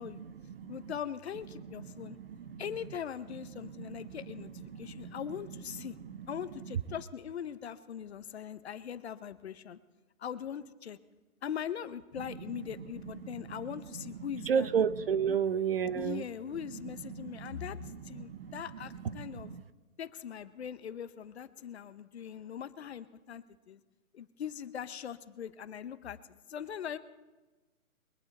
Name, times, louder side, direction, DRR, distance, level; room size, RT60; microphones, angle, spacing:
voice 1, 0.0-0.9 1.5-2.7 3.6-6.8 12.3-16.2 16.6-19.6, right 7 dB, 45° right, 14 dB, 0.7 m, -36 dB
voice 2, 0.7-2.2 2.6-4.5 4.8-6.0 6.3-9.8 10.2-11.0 11.4-14.7 15.3-15.4 16.0-19.5 20.0-23.8 24.1-27.0, left 8 dB, 50° left, 13 dB, 1.0 m, -41 dB
23.0 x 8.8 x 4.2 m, 1.2 s
figure-of-eight pair, 140°, 42 cm